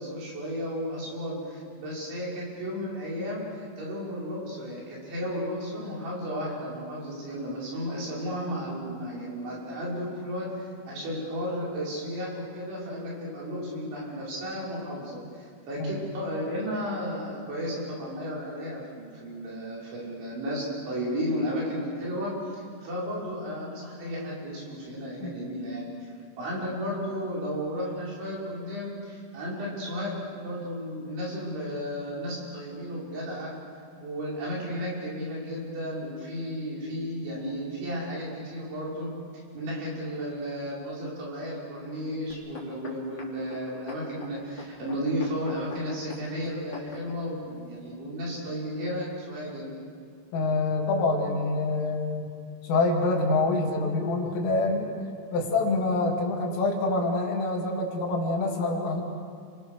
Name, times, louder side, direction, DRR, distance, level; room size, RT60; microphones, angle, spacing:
voice 1, 0.0-25.9 26.4-33.5 34.0-39.1 39.6-49.7, equal, 65° right, -5 dB, 8.5 m, -33 dB
sound 1, 42.3-47.2 47.9-48.0, left 4 dB, 25° left, 3.5 m, -42 dB
voice 2, 50.3-52.4 52.6-54.9 55.3-59.0, left 2 dB, 85° left, -1 dB, 5.2 m, -26 dB
29.5 x 24.5 x 6.6 m, 2.2 s
omnidirectional pair, 5.7 m